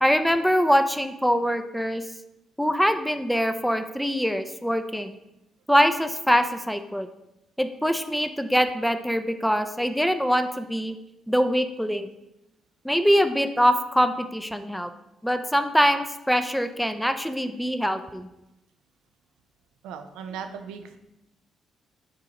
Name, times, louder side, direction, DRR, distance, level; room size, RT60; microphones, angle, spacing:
voice 1, 0.0-2.0 2.6-5.1 5.7-7.1 7.6-10.9 11.3-12.1 12.8-14.9 15.2-18.3, equal, ahead, 9 dB, 0.5 m, -23 dB
voice 2, 19.8-21.0, right 7 dB, 85° right, 7 dB, 0.5 m, -37 dB
5.8 x 4.6 x 4.0 m, 0.91 s
supercardioid pair, 60°, 0 cm